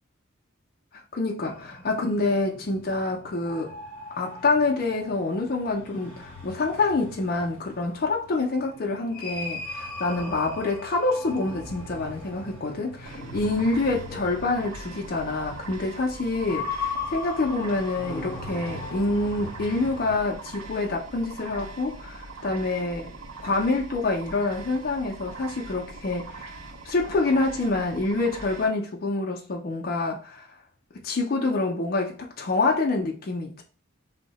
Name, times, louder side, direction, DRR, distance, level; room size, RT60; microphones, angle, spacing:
voice 1, 1.1-3.8 4.2-23.1 23.4-26.5 26.8-30.5 31.0-33.6, left 3 dB, 45° left, 0.4 m, -27 dB
sound 1, 1.4-20.2, left 3 dB, 10° left, 0.8 m, -39 dB
sound 2, 13.0-28.7, right 3 dB, 80° right, 0.6 m, -42 dB
2.7 x 2.1 x 3.9 m
head